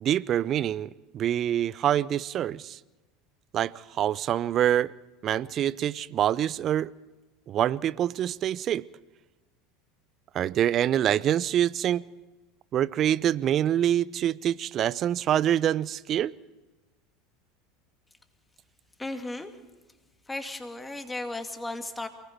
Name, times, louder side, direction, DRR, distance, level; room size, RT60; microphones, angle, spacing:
voice 1, 0.0-2.8 3.5-4.9 5.2-6.9 7.5-8.8 10.3-12.0 12.7-16.3, right 11 dB, 40° right, 0.6 m, -25 dB
voice 2, 19.0-19.5 20.3-22.1, left 2 dB, 10° left, 2.5 m, -35 dB
28.5 x 20.0 x 4.7 m
figure-of-eight pair, 75°, 0 cm